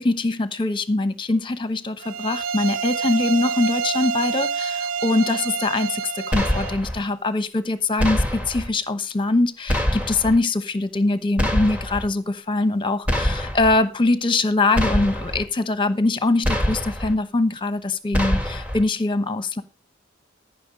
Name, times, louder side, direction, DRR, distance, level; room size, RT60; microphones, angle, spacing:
voice 1, 0.0-19.6, left 2 dB, 25° left, 1.0 m, -23 dB
sound 1, 2.0-6.8, right 6 dB, 85° right, 0.6 m, -27 dB
sound 2, 6.3-7.0 8.0-8.7 9.7-10.4 11.4-12.1 13.1-13.8 14.7-15.4 16.4-17.1 18.1-18.8, equal, 5° right, 1.7 m, -24 dB
13.5 x 6.0 x 5.2 m
head